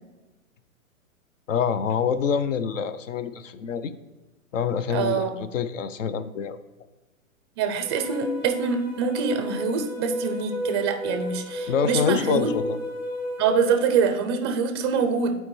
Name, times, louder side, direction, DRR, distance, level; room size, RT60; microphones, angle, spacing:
voice 1, 1.5-3.9 4.5-6.6 11.7-12.8, left 7 dB, 65° left, 13 dB, 0.6 m, -26 dB
voice 2, 4.9-5.4 7.6-12.5 13.4-15.3, right 5 dB, 20° right, 6 dB, 0.4 m, -25 dB
sound 1, 7.8-13.8, equal, 10° left, 1.8 m, -32 dB
11.5 x 4.5 x 3.1 m, 1.2 s
hypercardioid pair, 125°, 43 cm